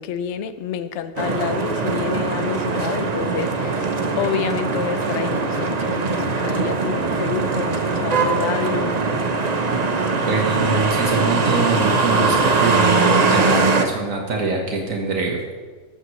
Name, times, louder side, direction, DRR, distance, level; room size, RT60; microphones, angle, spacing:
voice 1, 0.0-9.0 13.2-13.5, left 8 dB, 65° left, 0.9 m, -28 dB
sound 1, 1.2-13.9, right 4 dB, 35° right, 0.8 m, -21 dB
voice 2, 10.2-15.5, right 3 dB, 80° right, 1.7 m, -23 dB
14.0 x 13.0 x 3.1 m
omnidirectional pair, 1.4 m